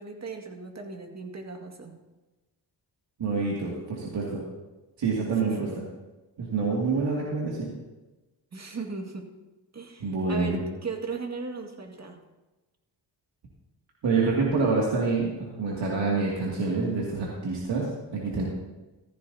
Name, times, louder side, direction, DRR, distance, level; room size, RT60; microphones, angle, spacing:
voice 1, 0.0-2.0 5.4-5.7 8.5-9.3 9.7-12.2, right 4 dB, 40° right, 3 dB, 2.0 m, -37 dB
voice 2, 3.2-4.4 5.0-5.7 6.4-7.7 10.0-10.6 14.0-18.4, right 4 dB, 75° right, -4 dB, 2.4 m, -27 dB
15.0 x 15.0 x 2.8 m, 1.1 s
cardioid pair, 95°, 43 cm